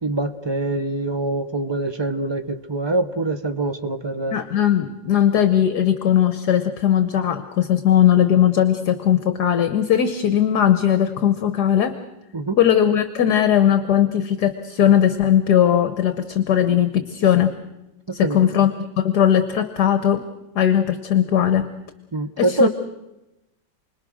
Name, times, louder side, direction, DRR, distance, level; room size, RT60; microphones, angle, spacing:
voice 1, 0.0-4.4 12.3-12.6 18.1-18.4 22.1-22.7, right 2 dB, 20° right, 0.8 m, -24 dB
voice 2, 4.3-12.0 12.6-17.5 18.1-18.7 19.0-20.3 20.5-21.7 22.4-22.7, left 10 dB, 60° left, 1.6 m, -18 dB
29.5 x 21.0 x 6.3 m
omnidirectional pair, 2.0 m